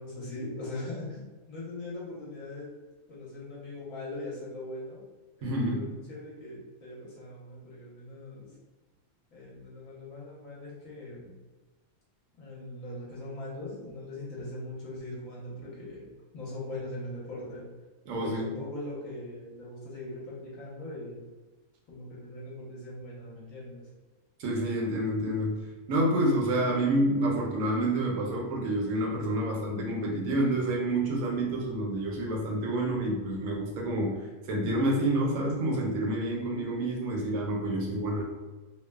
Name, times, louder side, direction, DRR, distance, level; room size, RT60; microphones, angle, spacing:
voice 1, 0.0-2.7 3.1-5.1 5.4-8.5 9.3-11.3 12.4-17.6 18.2-21.2 21.9-23.9, left 2 dB, 60° left, -6 dB, 1.1 m, -40 dB
voice 2, 5.4-5.9 18.1-18.5 24.4-25.6 25.9-38.2, right 1 dB, 65° right, -2 dB, 0.9 m, -28 dB
3.0 x 2.0 x 2.2 m, 1.3 s
omnidirectional pair, 1.7 m